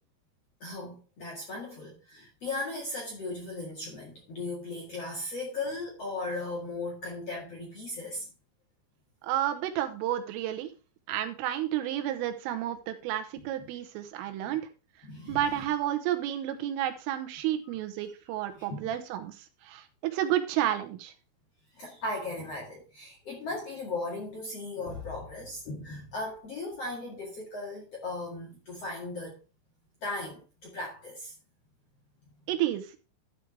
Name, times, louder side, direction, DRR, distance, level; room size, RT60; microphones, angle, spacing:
voice 1, 0.6-8.3 14.4-14.6 15.0-15.6 18.0-18.1 18.6-18.9 21.7-29.4 30.0-31.3, left 2 dB, 50° left, 2.0 m, -37 dB
voice 2, 9.2-10.7 11.1-14.7 15.3-21.1 32.5-33.0, right 12 dB, 85° right, 3.6 m, -31 dB
12.5 x 4.7 x 4.8 m
omnidirectional pair, 5.7 m